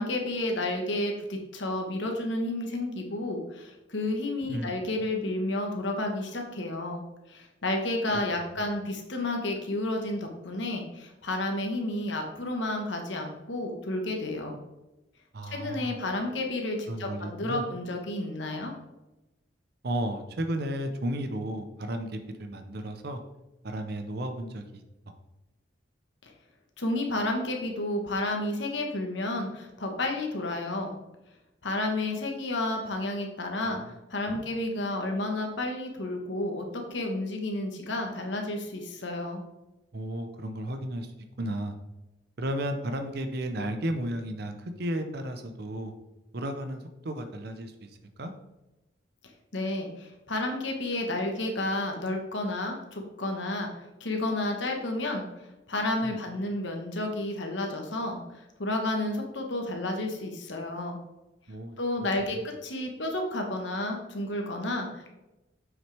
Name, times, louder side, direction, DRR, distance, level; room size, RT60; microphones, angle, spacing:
voice 1, 0.0-14.6 15.5-18.7 26.2-26.3 26.8-31.0 31.6-33.8 34.1-36.6 36.9-39.4 49.5-53.7 54.0-55.3 55.7-58.2 58.6-61.0 61.8-65.1, left 1 dB, 65° left, 2 dB, 1.2 m, -31 dB
voice 2, 4.4-4.8 15.3-16.0 16.9-17.6 19.8-23.2 23.6-24.8 34.3-34.4 39.9-41.1 41.4-41.7 42.4-45.9 46.3-47.9 48.2-48.3 56.0-56.2 61.5-61.8, right 1 dB, 55° right, 7 dB, 0.7 m, -33 dB
7.3 x 6.1 x 3.3 m, 0.98 s
head